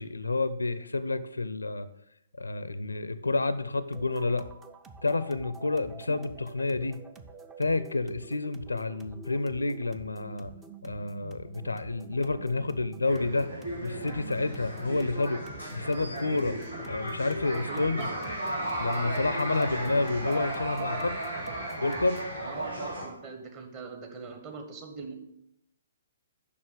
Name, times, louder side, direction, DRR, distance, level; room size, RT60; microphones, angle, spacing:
voice 1, 0.0-1.9 2.4-4.4 5.0-7.0 7.6-10.5 10.8-13.5 13.8-15.4 15.7-16.6 16.8-18.1 18.7-21.1 21.8-22.2, left 3 dB, 75° left, 14 dB, 0.5 m, -29 dB
sound 1, 3.9-22.4, right 5 dB, 15° right, 0.5 m, -48 dB
sound 2, 13.0-23.1, right 1 dB, 85° right, 3.2 m, -35 dB
voice 2, 17.5-18.1 22.4-25.1, right 4 dB, 30° right, 4 dB, 1.3 m, -42 dB
6.7 x 5.4 x 6.8 m, 0.80 s
figure-of-eight pair, 125°, 0 cm